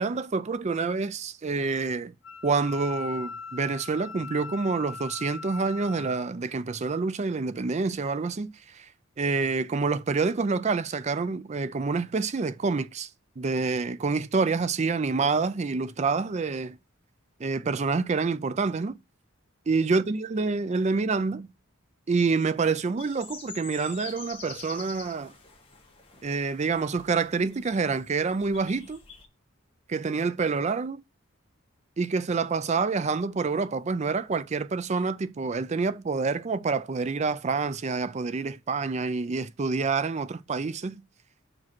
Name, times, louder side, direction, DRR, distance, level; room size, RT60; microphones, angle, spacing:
voice 1, 0.0-2.1 2.4-8.9 9.2-13.1 13.4-16.8 17.4-19.0 19.7-21.5 22.1-25.3 26.2-29.0 29.9-31.0 32.0-41.0, right 4 dB, 35° right, 0.4 m, -27 dB
Wind instrument woodwind instrument, 2.2-6.3, left 5 dB, 75° left, 0.6 m, -40 dB
sound 1, 23.0-29.3, left 5 dB, 25° left, 1.5 m, -46 dB
6.1 x 4.9 x 6.0 m
head